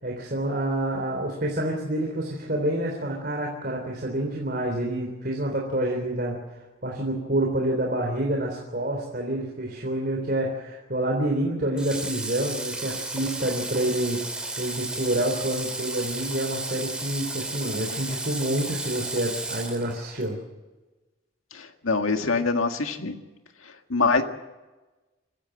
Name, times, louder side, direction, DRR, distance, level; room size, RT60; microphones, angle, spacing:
voice 1, 0.0-14.2 14.6-20.4, right 1 dB, 45° right, 0 dB, 3.5 m, -28 dB
Water / Water tap faucet, 11.8-20.3, right 2 dB, 5° right, 2.9 m, -33 dB
voice 2, 21.5-23.1 23.9-24.2, left 4 dB, 90° left, 6 dB, 1.9 m, -24 dB
25.5 x 15.5 x 7.8 m, 1.2 s
head